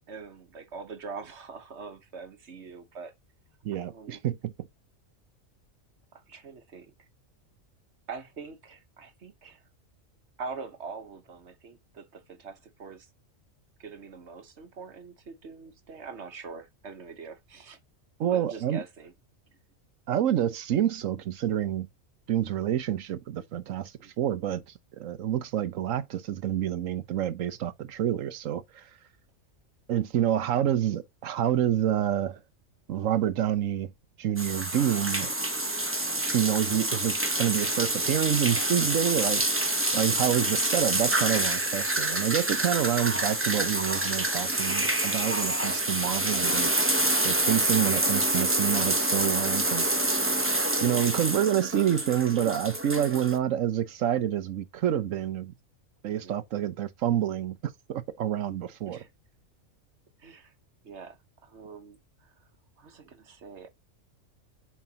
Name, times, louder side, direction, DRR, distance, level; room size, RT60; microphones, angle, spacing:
voice 1, 0.1-3.1 3.7-4.2 6.1-6.9 8.1-9.6 10.4-13.1 13.8-17.8 18.3-19.1 24.0-24.1 56.1-56.4 58.8-59.1 60.2-60.5 60.8-62.3 62.8-63.7, right 5 dB, 60° right, 1.4 m, -43 dB
voice 2, 3.6-4.5 18.2-18.8 20.1-21.9 22.3-24.6 24.9-28.8 29.9-32.4 32.9-33.9 34.2-35.3 36.2-39.6 39.9-46.7 47.2-49.9 50.4-55.5 56.0-57.6 57.9-59.0, right 10 dB, 80° right, 1.2 m, -28 dB
sound 1, 34.4-53.4, right 1 dB, 10° right, 1.0 m, -27 dB
7.3 x 6.0 x 2.9 m
omnidirectional pair, 1.4 m